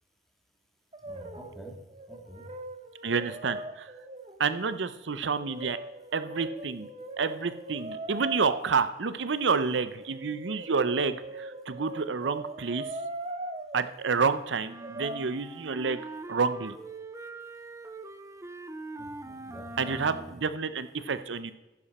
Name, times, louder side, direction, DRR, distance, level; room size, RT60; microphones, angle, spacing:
Brass instrument, 0.9-1.6 1.9-4.4 5.4-8.6 10.0-13.8 14.8-15.3, right 1 dB, 30° right, 0.9 m, -40 dB
voice 1, 1.0-1.8 2.1-2.4 19.0-20.3, right 1 dB, ahead, -1 dB, 2.3 m, -46 dB
voice 2, 3.0-3.9 4.4-5.8 6.1-6.9 7.2-12.9 13.7-16.8 19.8-21.5, right 5 dB, 80° right, 13 dB, 0.7 m, -29 dB
sound 1, 14.7-20.4, right 2 dB, 15° right, 0.4 m, -43 dB
11.0 x 9.9 x 4.3 m, 1.1 s
head